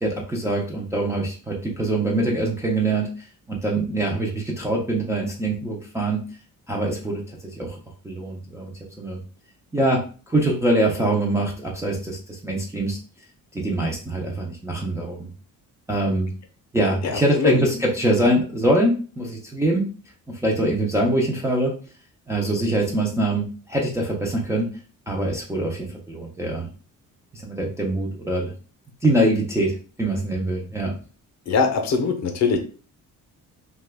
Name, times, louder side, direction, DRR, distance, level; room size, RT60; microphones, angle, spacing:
voice 1, 0.0-6.2 6.7-7.8 8.0-8.7 9.0-9.2 9.7-10.0 10.3-13.0 13.5-15.3 15.9-16.3 16.7-19.8 20.3-21.7 22.3-24.7 25.1-26.7 27.3-28.5 29.0-30.9, right 1 dB, 10° right, -3 dB, 0.3 m, -24 dB
voice 2, 17.0-17.6 31.5-32.6, left 4 dB, 55° left, 5 dB, 0.6 m, -22 dB
2.8 x 2.2 x 3.3 m, 0.38 s
cardioid pair, 175°, 33 cm